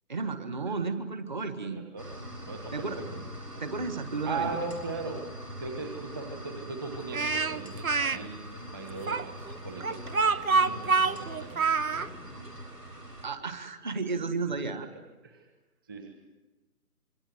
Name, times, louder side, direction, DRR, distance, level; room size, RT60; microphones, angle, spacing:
voice 1, 0.1-1.8 2.7-3.0 3.6-4.5 13.2-14.9, right 4 dB, 30° right, 10 dB, 1.6 m, -33 dB
voice 2, 1.6-2.1 2.4-3.3 4.2-11.7 15.2-15.5 15.8-16.1, right 3 dB, 15° right, 3 dB, 1.4 m, -39 dB
sound 1, 2.0-13.3, equal, 90° right, 6.9 m, -43 dB
Speech, 7.1-8.2 9.1-12.1, right 4 dB, 60° right, 1.2 m, -26 dB
26.5 x 23.5 x 7.8 m, 1.1 s
figure-of-eight pair, 150°, 46 cm